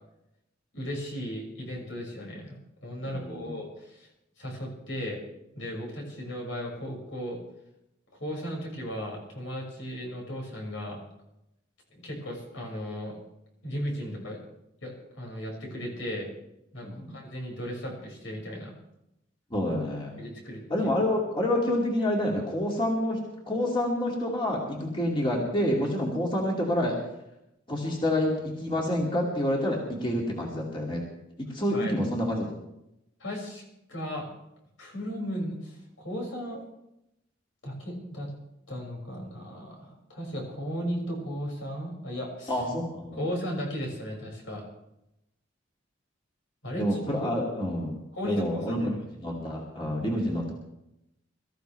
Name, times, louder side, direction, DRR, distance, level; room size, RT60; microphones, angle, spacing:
voice 1, 0.7-4.1 4.4-5.2 5.5-7.4 8.2-11.0 11.9-13.2 13.6-14.4 14.8-16.3 16.7-18.7 20.2-20.9 31.7-31.9 33.2-33.6 33.9-34.3 34.8-36.6 37.6-38.3 38.7-42.6 43.2-44.6 46.6-47.3 48.1-48.9, equal, 80° left, -2 dB, 6.4 m, -36 dB
voice 2, 3.1-3.5 16.8-17.1 19.5-20.1 20.7-23.2 23.5-27.0 27.7-31.0 31.4-32.5 42.5-43.2 46.7-48.0 48.2-50.5, left 1 dB, 25° left, -2 dB, 2.7 m, -28 dB
24.0 x 14.5 x 3.4 m, 0.85 s
head